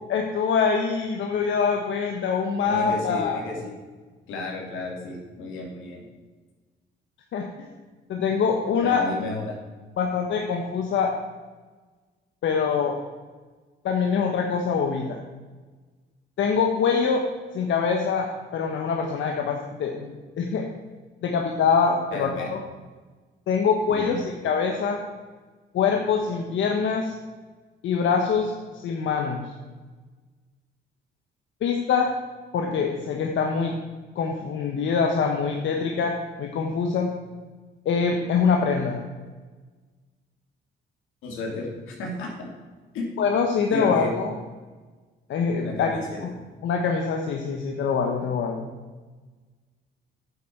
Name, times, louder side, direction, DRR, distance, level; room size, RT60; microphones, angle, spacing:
voice 1, 0.1-3.4 7.3-7.7 8.1-9.0 10.0-11.1 12.4-13.0 13.8-15.2 16.4-17.2 17.5-18.3 18.5-20.6 21.2-22.6 23.5-25.0 25.7-27.1 27.8-29.4 31.6-32.1 32.5-33.8 34.2-36.1 36.4-37.1 37.8-39.0 43.2-44.3 45.3-46.3 46.6-48.7, left 5 dB, 70° left, 1 dB, 1.1 m, -24 dB
voice 2, 2.6-3.7 4.3-6.1 8.8-9.6 22.1-22.5 23.9-24.2 41.2-42.5 42.9-43.1 43.7-44.1 45.6-46.2, left 3 dB, 90° left, 0 dB, 2.6 m, -33 dB
9.6 x 7.6 x 4.6 m, 1.3 s
cardioid pair, 90°, 20 cm